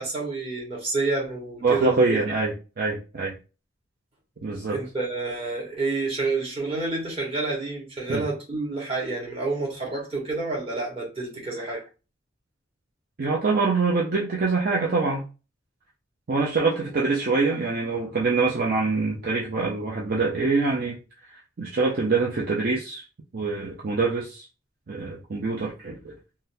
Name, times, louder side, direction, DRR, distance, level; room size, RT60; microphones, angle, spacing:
voice 1, 0.0-2.2 4.7-11.8, right 3 dB, 30° right, 1.3 m, -29 dB
voice 2, 1.6-3.3 4.4-4.8 8.1-8.2 13.2-15.2 16.3-21.0 21.6-23.0 23.3-24.5 24.9-26.1, right 3 dB, 50° right, 0.6 m, -24 dB
3.7 x 2.2 x 2.6 m
head